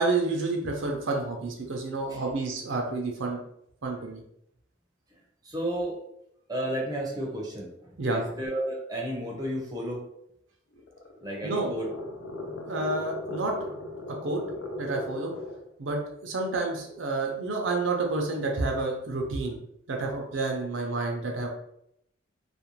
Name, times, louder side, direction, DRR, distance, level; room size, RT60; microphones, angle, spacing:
voice 1, 0.0-3.4 3.8-4.2 8.0-8.2 11.4-11.7 12.6-13.6 14.2-14.4 14.8-15.3 15.8-19.6 19.9-21.5, right 3 dB, 75° right, 1 dB, 0.6 m, -29 dB
voice 2, 5.4-6.0 6.5-10.0 11.2-11.9, right 1 dB, 20° right, -2 dB, 0.5 m, -32 dB
sound 1, 10.7-15.7, left 1 dB, 85° left, 0.6 m, -38 dB
2.5 x 2.1 x 2.9 m, 0.74 s
head